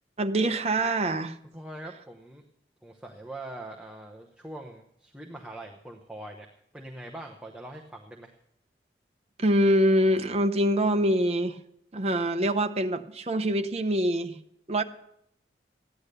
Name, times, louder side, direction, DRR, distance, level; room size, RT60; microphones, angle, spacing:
voice 1, 0.2-1.4 9.4-11.6 11.9-14.4 14.7-14.8, right 1 dB, 35° right, 7 dB, 0.7 m, -24 dB
voice 2, 1.5-2.4 2.8-6.5 6.7-8.3, right 1 dB, 5° right, 0 dB, 0.9 m, -42 dB
15.0 x 10.5 x 6.7 m, 0.75 s
head